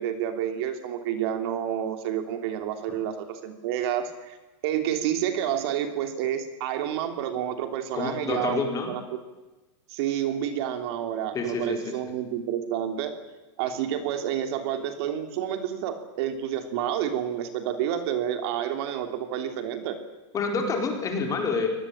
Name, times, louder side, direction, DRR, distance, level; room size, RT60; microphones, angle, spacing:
voice 1, 0.0-4.4 4.6-9.0 9.9-13.1 13.6-20.0, right 10 dB, 55° right, 6 dB, 3.2 m, -29 dB
voice 2, 7.9-8.9 11.3-12.0 20.3-21.7, left 4 dB, 20° left, 3 dB, 4.5 m, -28 dB
25.0 x 19.0 x 8.9 m, 1.1 s
supercardioid pair, 150°, 15 cm